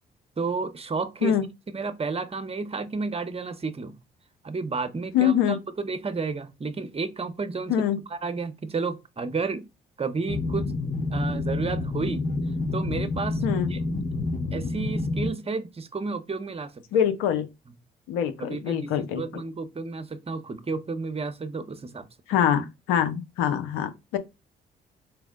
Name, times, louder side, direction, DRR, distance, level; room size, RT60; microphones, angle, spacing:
voice 1, 0.4-1.3 1.7-3.9 4.4-7.7 8.1-9.7 10.0-10.7 11.1-12.2 12.7-13.4 13.7-13.8 14.5-16.8 18.4-22.1, right 4 dB, 30° right, 0.7 m, -31 dB
voice 2, 5.1-5.6 7.7-8.0 13.4-13.7 16.9-17.5 18.1-19.2 22.3-24.2, left 9 dB, 80° left, 0.6 m, -24 dB
sound 1, 10.3-15.3, left 2 dB, 40° left, 1.3 m, -28 dB
4.5 x 2.0 x 3.6 m
hypercardioid pair, 50°, 21 cm